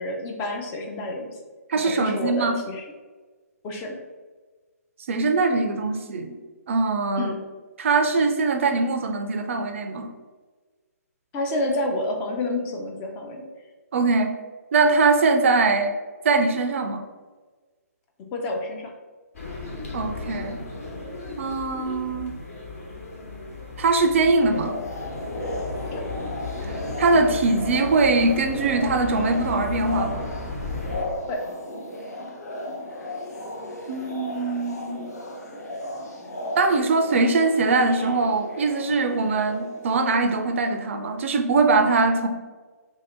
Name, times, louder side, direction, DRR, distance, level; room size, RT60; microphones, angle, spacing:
voice 1, 0.0-1.3 1.8-2.8 3.6-4.0 7.2-7.4 11.3-13.5 18.3-18.9 25.9-26.0 31.3-31.4, left 1 dB, 20° left, 1 dB, 0.4 m, -29 dB
voice 2, 1.7-2.6 5.1-6.4 6.7-7.3 7.8-10.1 13.9-14.4 14.7-15.9 16.2-17.0 19.9-20.6 21.4-22.3 23.8-24.7 27.0-30.3 33.9-35.0 36.6-42.3, right 3 dB, 50° right, 6 dB, 0.4 m, -22 dB
sound 1, 19.3-31.0, left 2 dB, 55° left, 1.2 m, -35 dB
sound 2, 24.5-40.7, left 1 dB, 75° left, 0.8 m, -35 dB
2.8 x 2.7 x 4.2 m, 1.3 s
figure-of-eight pair, 140°, 9 cm